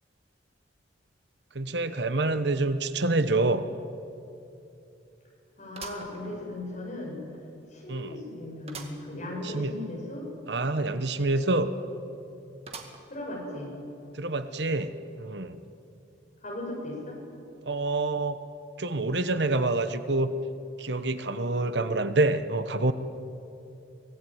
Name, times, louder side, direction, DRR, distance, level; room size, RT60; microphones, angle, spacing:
voice 1, 1.5-3.7 7.9-8.2 9.4-9.8 10.5-11.7 14.1-15.6 17.6-18.4 18.8-20.3 20.8-22.9, right 2 dB, 65° right, 11 dB, 1.1 m, -27 dB
sound 1, 3.5-3.6 4.0-4.1 5.7-6.8 7.3-7.4 8.7-9.1 9.5-9.6 9.8-9.9 12.7-13.3 13.9-14.0 14.9-15.0, right 4 dB, 35° right, 2.1 m, -44 dB
voice 2, 5.6-7.2 7.7-10.3 13.1-13.7 16.4-17.2, left 1 dB, 40° left, -2 dB, 7.8 m, -37 dB
24.5 x 18.0 x 9.3 m, 2.7 s
head